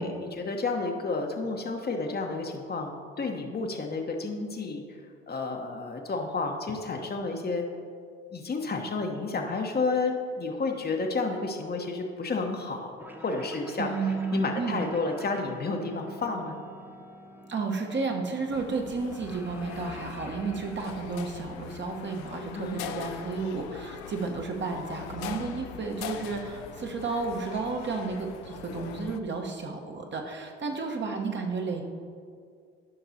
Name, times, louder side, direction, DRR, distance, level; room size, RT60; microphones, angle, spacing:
voice 1, 0.0-4.8 5.3-7.6 8.3-12.9 13.2-13.9 14.3-16.5 22.5-22.8, left 3 dB, 30° left, 3 dB, 1.0 m, -31 dB
sound 1, 13.0-22.0, right 1 dB, 5° right, 0.7 m, -47 dB
voice 2, 13.8-14.8 17.5-31.8, right 4 dB, 35° right, 2 dB, 1.1 m, -32 dB
sound 2, 18.5-29.2, left 9 dB, 65° left, 0.5 m, -41 dB
13.5 x 5.9 x 2.8 m, 2.2 s
hypercardioid pair, 55°, 33 cm